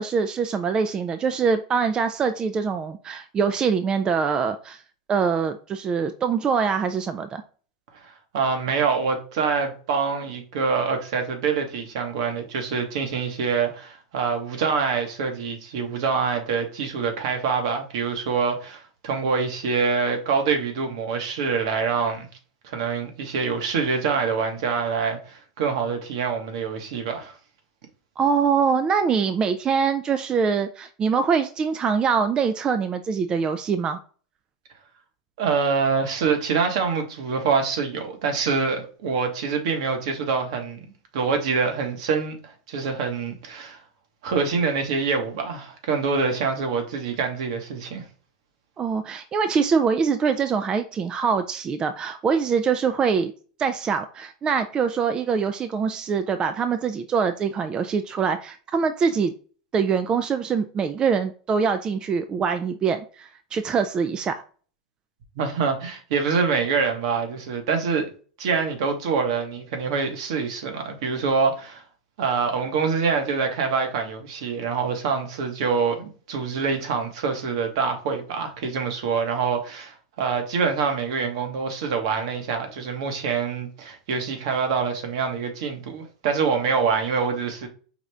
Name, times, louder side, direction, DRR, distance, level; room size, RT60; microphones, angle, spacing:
voice 1, 0.0-4.8 5.1-7.4 28.2-34.0 48.8-53.3 53.6-59.3 59.7-64.4, right 6 dB, 25° right, 0.4 m, -24 dB
voice 2, 7.9-22.3 22.6-27.3 35.4-43.8 44.2-48.0 65.4-68.1 68.4-71.8 72.2-87.7, right 5 dB, 65° right, 1.1 m, -25 dB
5.0 x 2.5 x 3.3 m
hypercardioid pair, 100°, 3 cm